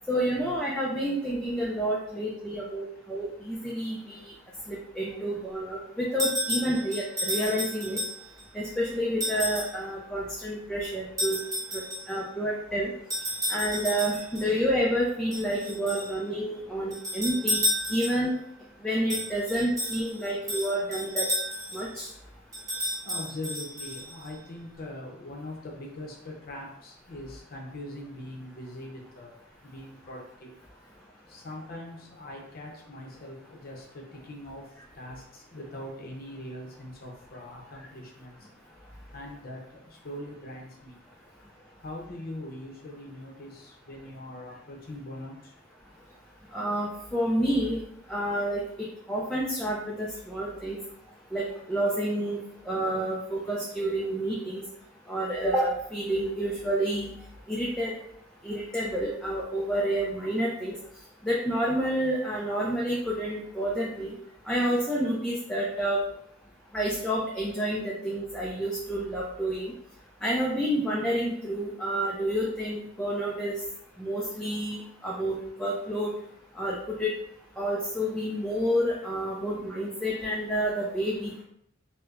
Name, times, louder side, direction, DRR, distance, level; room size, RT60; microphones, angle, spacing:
voice 1, 0.1-4.2 4.7-8.0 8.5-11.4 11.7-12.9 13.5-17.6 17.9-18.3 18.8-21.3 21.7-22.1 46.5-47.8 48.1-50.8 51.3-52.4 52.7-54.6 55.1-57.1 57.5-57.9 58.4-60.7 61.2-64.1 64.5-66.0 66.7-69.7 70.2-73.5 74.0-76.1 76.6-77.1 77.6-81.4, right 1 dB, 5° left, -5 dB, 0.4 m, -29 dB
sound 1, 6.2-8.4 9.2-9.8 11.2-12.2 13.1-14.5 15.3-16.1 16.9-18.3 19.1-21.9 22.5-24.3, equal, 15° right, 1.1 m, -32 dB
voice 2, 23.0-29.4 29.6-30.5 31.3-38.5 39.1-41.0 41.8-45.5, left 1 dB, 50° left, 0 dB, 0.7 m, -42 dB
4.5 x 2.1 x 2.5 m, 0.72 s
head